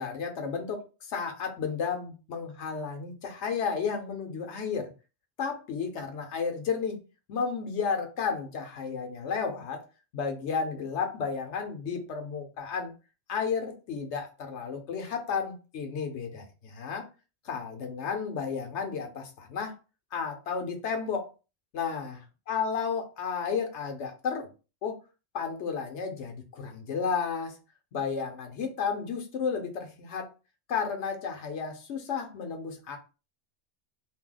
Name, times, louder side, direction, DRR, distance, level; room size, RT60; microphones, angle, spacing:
voice 1, 0.0-4.9 5.4-7.0 7.3-9.8 10.1-12.9 13.3-17.1 17.4-19.8 20.1-21.3 21.7-22.2 22.5-24.5 24.8-25.0 25.3-27.6 27.9-30.3 30.7-33.0, left 6 dB, 75° left, 5 dB, 1.0 m, -32 dB
2.7 x 2.1 x 3.8 m, 0.32 s
omnidirectional pair, 1.2 m